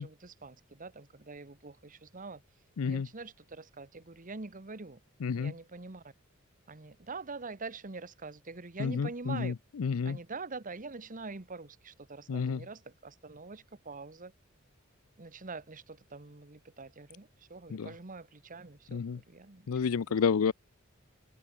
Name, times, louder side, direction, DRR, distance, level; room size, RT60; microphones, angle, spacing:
voice 1, 0.0-2.4 2.8-5.0 5.3-6.1 6.7-9.5 10.0-14.3 15.2-20.4, right 3 dB, 40° right, 1.3 m, -45 dB
voice 2, 2.8-3.1 5.2-5.5 8.8-10.2 12.3-12.6 17.7-17.9 18.9-19.2 19.7-20.5, left 6 dB, 85° left, 0.5 m, -30 dB
head